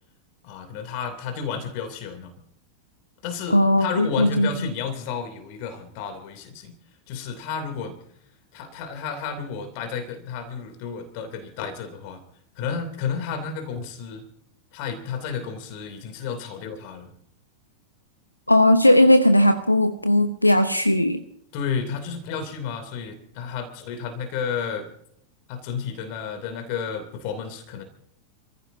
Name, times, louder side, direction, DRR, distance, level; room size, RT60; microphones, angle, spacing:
voice 1, 0.4-2.3 3.2-6.7 7.1-8.0 8.5-12.2 12.6-14.2 14.7-17.1 21.5-24.9 25.5-27.8, left 6 dB, 45° left, 7 dB, 2.9 m, -32 dB
voice 2, 3.5-4.7 18.5-21.2, left 1 dB, 85° left, 10 dB, 0.8 m, -18 dB
28.0 x 15.5 x 2.7 m, 0.69 s
figure-of-eight pair, 90°, 0 cm